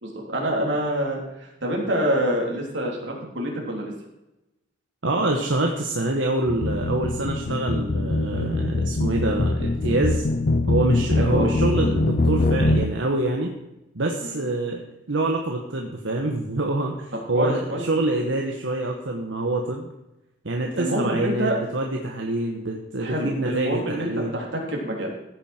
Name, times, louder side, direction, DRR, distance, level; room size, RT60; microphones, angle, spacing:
voice 1, 0.0-3.9 11.2-11.5 14.2-14.3 17.3-17.9 20.8-21.6 23.0-25.1, right 1 dB, 70° right, -1 dB, 3.6 m, -26 dB
voice 2, 5.0-10.3 10.7-13.5 13.9-19.9 20.4-24.4, right 2 dB, 90° right, 1 dB, 1.3 m, -26 dB
sound 1, 6.5-12.9, left 2 dB, 50° left, 0.6 m, -23 dB
15.5 x 9.2 x 4.5 m, 0.93 s
head